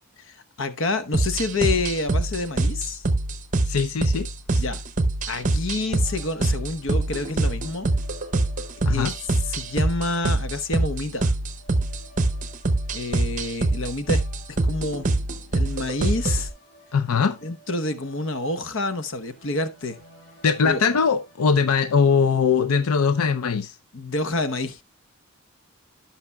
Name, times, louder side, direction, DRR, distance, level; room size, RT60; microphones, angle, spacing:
voice 1, 0.2-3.0 4.6-4.8 5.3-7.9 8.9-9.1 9.5-11.3 12.9-14.2 14.5-15.2 15.5-16.5 17.4-20.0 20.6-20.8 23.9-24.8, left 2 dB, 60° left, 0.9 m, -28 dB
sound 1, 1.1-16.5, right 2 dB, 35° right, 0.7 m, -24 dB
voice 2, 3.7-4.6 8.9-9.1 16.9-17.4 20.4-23.7, left 5 dB, 90° left, 0.6 m, -21 dB
sound 2, 5.9-23.0, right 1 dB, 40° left, 6.0 m, -53 dB
16.5 x 5.8 x 2.2 m
head